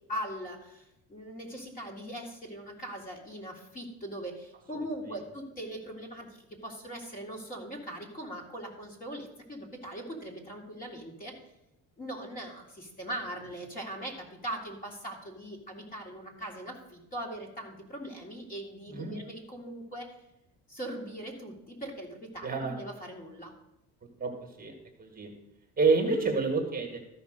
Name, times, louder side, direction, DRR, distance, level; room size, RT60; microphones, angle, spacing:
voice 1, 0.1-11.3 12.0-20.2 20.7-23.5, right 1 dB, 25° left, 0 dB, 2.1 m, -40 dB
voice 2, 22.4-22.8 24.2-24.3 24.6-24.7 25.0-25.3 25.8-27.0, right 4 dB, 25° right, 3 dB, 1.6 m, -28 dB
13.0 x 5.4 x 5.1 m, 0.88 s
cardioid pair, 145°, 32 cm